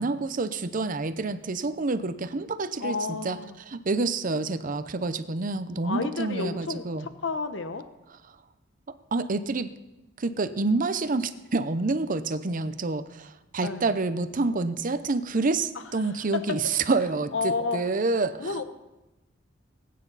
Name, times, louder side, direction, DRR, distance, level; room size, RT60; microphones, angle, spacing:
voice 1, 0.0-3.0 3.2-3.4 3.7-7.1 9.1-9.7 10.2-18.6, right 3 dB, 45° right, 12 dB, 0.7 m, -28 dB
voice 2, 2.8-3.6 5.8-7.8 13.6-13.9 16.5-16.6 17.3-17.8 18.4-18.6, left 4 dB, 70° left, 9 dB, 0.9 m, -31 dB
21.0 x 9.4 x 4.1 m, 1.0 s
head